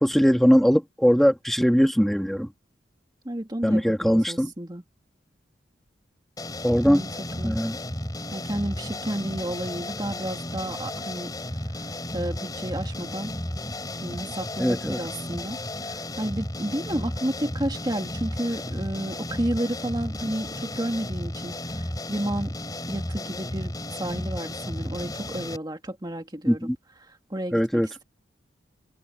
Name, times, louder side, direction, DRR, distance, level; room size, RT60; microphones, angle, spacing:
voice 1, 0.0-2.5 3.6-4.5 6.6-7.1 7.4-7.8 14.6-15.0 26.5-26.8 27.5-27.9, equal, ahead, 2.2 m, -20 dB
voice 2, 3.2-4.8 6.8-7.1 7.4-7.6 8.3-11.3 12.1-13.3 14.0-22.5 22.9-26.7 27.1-28.0, right 1 dB, 20° right, 2.1 m, -31 dB
sound 1, 6.4-25.6, left 1 dB, 20° left, 3.7 m, -33 dB
open air
head